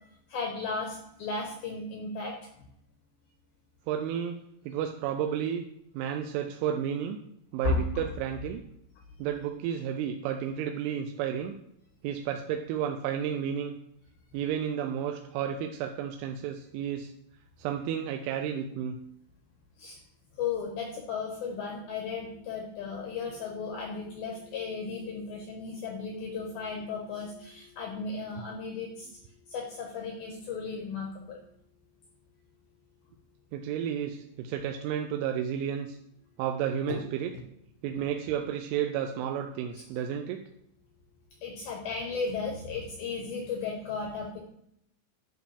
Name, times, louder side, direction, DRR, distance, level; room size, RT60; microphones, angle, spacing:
voice 1, 0.3-2.3 7.6-8.1 19.8-20.0 20.4-29.1 29.5-31.4 41.4-44.4, left 4 dB, 80° left, 0 dB, 2.2 m, -35 dB
voice 2, 3.9-5.7 5.9-7.2 7.5-8.6 9.2-11.5 12.0-13.8 14.3-17.1 17.6-19.0 33.5-36.0 36.4-37.3 37.8-40.4, right 9 dB, 85° right, 4 dB, 2.9 m, -32 dB
10.5 x 6.2 x 3.5 m, 0.76 s
omnidirectional pair, 5.9 m